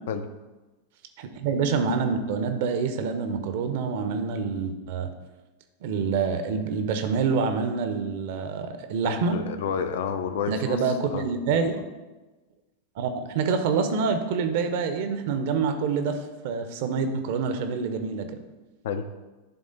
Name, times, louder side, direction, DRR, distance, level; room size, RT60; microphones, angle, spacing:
voice 1, 1.2-5.1 5.8-9.4 10.5-11.8 13.0-16.2 16.4-18.3, right 5 dB, 50° right, 8 dB, 0.8 m, -26 dB
voice 2, 9.0-11.3 18.8-19.0, left 6 dB, 55° left, 9 dB, 0.6 m, -30 dB
11.0 x 3.6 x 3.9 m, 1.2 s
figure-of-eight pair, 90°, 0 cm